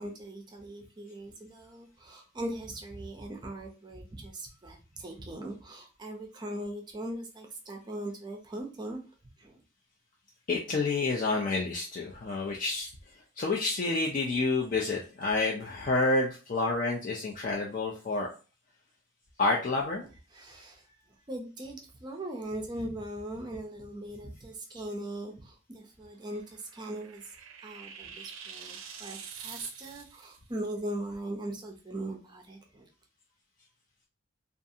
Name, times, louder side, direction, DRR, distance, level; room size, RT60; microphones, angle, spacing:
voice 1, 0.0-9.0 9.4-9.6 20.0-27.2 27.6-32.9, right 1 dB, 20° right, 2 dB, 0.4 m, -40 dB
voice 2, 10.5-12.9 13.4-18.3 19.4-20.0, left 3 dB, 40° left, -2 dB, 0.4 m, -29 dB
sound 1, 26.2-30.4, right 7 dB, 80° right, 0.4 m, -46 dB
2.6 x 2.4 x 2.6 m, 0.34 s
head